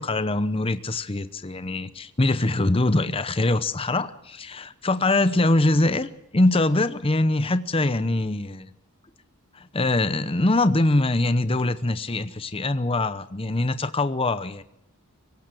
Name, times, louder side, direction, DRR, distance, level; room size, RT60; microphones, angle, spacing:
voice 1, 0.0-8.7 9.5-14.6, left 2 dB, 25° left, 13 dB, 0.8 m, -23 dB
25.0 x 16.5 x 7.7 m, 0.77 s
head